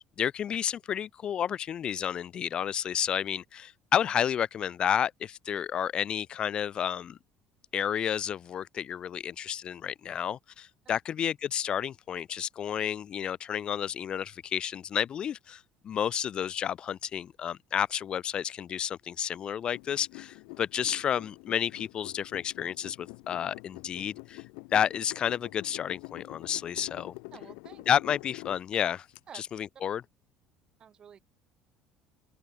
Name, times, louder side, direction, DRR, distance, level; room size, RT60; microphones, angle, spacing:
voice 1, 0.2-7.2 7.7-24.4 24.7-27.1 27.9-29.1 29.3-30.0, left 9 dB, 40° left, 0.9 m, -31 dB
sound 1, 19.7-29.2, left 40 dB or more, 85° left, 5.5 m, -46 dB
voice 2, 27.3-27.9 29.3-29.4 30.8-31.2, right 8 dB, 40° right, 8.0 m, -50 dB
open air
cardioid pair, 110°, 2 cm